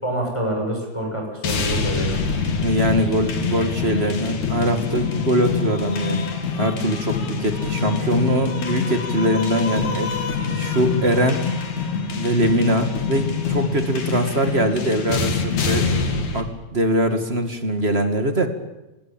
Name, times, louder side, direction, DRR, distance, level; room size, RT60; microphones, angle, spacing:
voice 1, 0.0-2.4, right 1 dB, 10° left, 1 dB, 7.2 m, -27 dB
sound 1, 1.4-16.4, left 5 dB, 80° left, 4.0 m, -25 dB
voice 2, 2.6-6.3 6.6-10.3 10.6-11.4 12.1-15.9 16.3-18.5, right 1 dB, 25° right, 7 dB, 1.9 m, -22 dB
28.0 x 20.5 x 8.9 m, 1.0 s
omnidirectional pair, 3.3 m